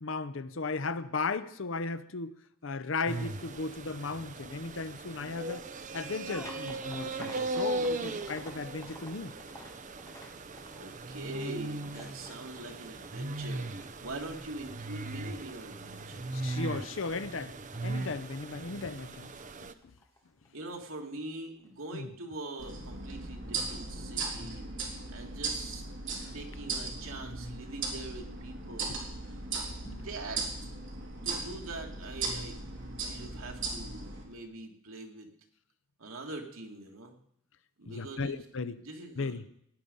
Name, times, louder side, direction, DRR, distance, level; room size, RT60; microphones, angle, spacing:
voice 1, 0.0-2.3 2.6-5.7 5.9-9.4 16.1-17.5 17.8-19.3 19.6-19.7 21.9-22.1 26.2-26.3 29.8-30.0 37.9-38.8 39.2-39.5, left 4 dB, 65° left, 0.7 m, -36 dB
sound 1, 3.1-19.7, right 2 dB, 40° right, 0.8 m, -38 dB
sound 2, 6.3-21.3 21.6-22.2 22.9-23.0 23.4-23.7, left 1 dB, 15° left, 2.0 m, -53 dB
voice 2, 10.7-16.4 20.5-24.7 25.1-25.9 26.3-29.0 29.8-30.4 31.2-32.6 33.0-35.3 36.0-37.1 37.8-38.3 38.8-39.4, right 2 dB, 85° right, 2.3 m, -43 dB
sound 3, 22.6-34.2, right 3 dB, 60° right, 3.7 m, -38 dB
17.5 x 10.0 x 5.4 m
head